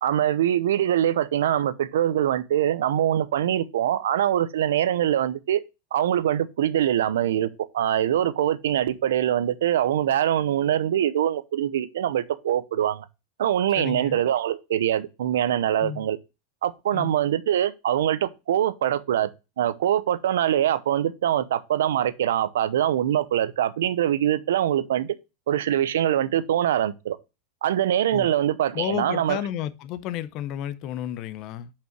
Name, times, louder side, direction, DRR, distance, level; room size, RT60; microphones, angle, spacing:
voice 1, 0.0-5.6 5.9-7.5 7.7-13.0 13.4-16.2 16.6-19.3 19.6-25.1 25.5-27.2 27.6-29.4, right 11 dB, 85° right, 0.8 m, -23 dB
voice 2, 13.7-14.2 15.8-16.1 16.9-17.1 28.1-28.3 28.7-31.7, left 11 dB, 45° left, 0.7 m, -32 dB
5.6 x 5.1 x 5.9 m
supercardioid pair, 140°, 0 cm